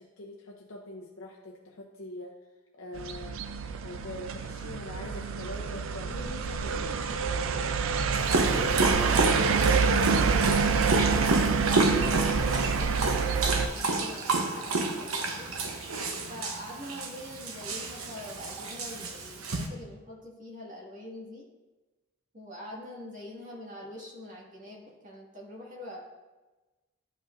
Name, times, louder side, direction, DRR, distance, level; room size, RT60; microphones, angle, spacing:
voice 1, 0.0-2.3 2.7-3.5 3.8-7.7, left 1 dB, 65° left, -2 dB, 0.7 m, -43 dB
sound 1, 3.0-13.7, right 5 dB, 70° right, 0.4 m, -27 dB
Dog, 8.1-19.7, right 3 dB, 90° right, 0.9 m, -30 dB
voice 2, 8.3-12.1 12.6-15.5 16.3-21.5 22.3-26.0, left 1 dB, 40° right, -4 dB, 1.9 m, -43 dB
11.5 x 5.2 x 2.6 m, 1.2 s
head